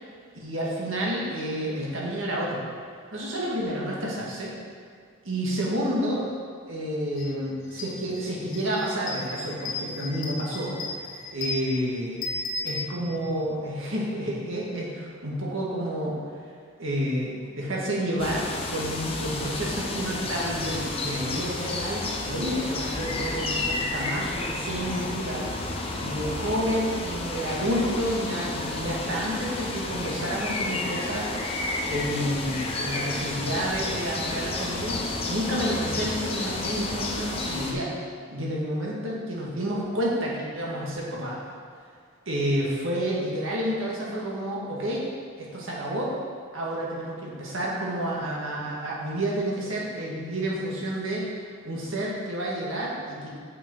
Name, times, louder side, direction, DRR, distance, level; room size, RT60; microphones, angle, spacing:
voice 1, 0.3-2.6 3.1-4.5 5.2-6.3 6.7-12.2 12.6-16.2 16.8-25.5 26.0-31.4 31.8-38.0 38.3-41.4 42.3-45.0 45.4-46.1 46.5-51.3 51.6-53.3, equal, 70° right, -4 dB, 1.9 m, -30 dB
sound 1, 7.2-7.3 7.6-13.5, left 2 dB, 75° left, 1.3 m, -35 dB
sound 2, 18.2-37.7, left 2 dB, 25° left, 0.8 m, -31 dB
7.0 x 6.2 x 5.4 m, 2.2 s
head